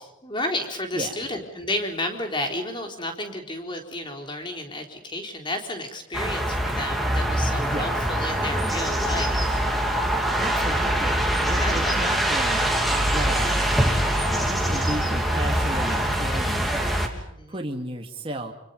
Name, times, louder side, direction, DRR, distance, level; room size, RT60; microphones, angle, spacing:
voice 1, 0.0-9.6 11.6-12.4 17.1-17.6, left 1 dB, 25° left, 4 dB, 3.9 m, -32 dB
Outside City Nature Ambience Sounds Birds & Cars, 6.1-17.1, right 1 dB, ahead, 3.0 m, -23 dB
voice 2, 10.1-11.2 11.5-12.7 13.1-13.9 14.4-17.0 17.5-18.5, right 1 dB, 25° right, 2 dB, 2.3 m, -34 dB
28.5 x 26.0 x 5.4 m, 0.81 s
head